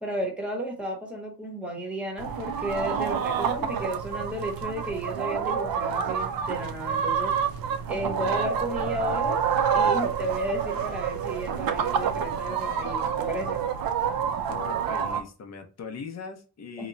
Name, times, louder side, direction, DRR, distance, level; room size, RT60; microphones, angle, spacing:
voice 1, 0.0-7.3 7.9-9.4 9.7-13.6 16.8-16.9, equal, 5° right, 0.9 m, -33 dB
sound 1, 2.2-15.2, right 7 dB, 55° right, 0.5 m, -28 dB
voice 2, 14.5-16.9, left 5 dB, 40° left, 0.6 m, -40 dB
2.9 x 2.1 x 3.8 m
wide cardioid pair, 155°, 43 cm